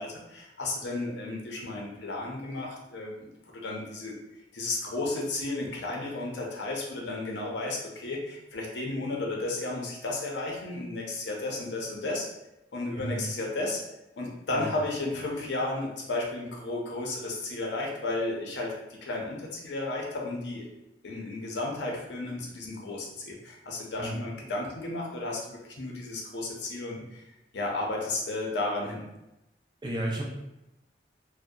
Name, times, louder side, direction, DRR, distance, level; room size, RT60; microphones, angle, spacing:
voice 1, 0.0-3.3 3.6-4.1 4.5-12.3 12.7-13.8 14.2-20.6 21.0-27.2 27.5-29.0, left 2 dB, 85° left, -1 dB, 0.6 m, -33 dB
voice 2, 13.0-13.3 14.5-14.7 24.0-24.2 29.8-30.3, right 1 dB, 25° right, -2 dB, 0.4 m, -32 dB
2.6 x 2.1 x 2.2 m, 0.92 s
head